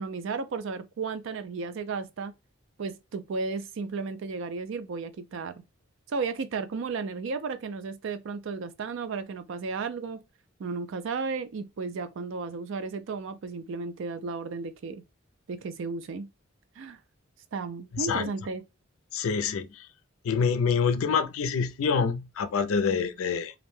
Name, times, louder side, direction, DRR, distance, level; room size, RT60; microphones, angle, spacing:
voice 1, 0.0-2.3 2.8-5.5 6.1-10.2 10.6-15.0 15.5-16.3 16.8-17.0 17.5-18.6, right 4 dB, 65° right, 0.4 m, -34 dB
voice 2, 17.9-18.3 19.1-19.8 20.2-23.5, left 5 dB, 85° left, 0.4 m, -26 dB
2.5 x 2.1 x 3.1 m
head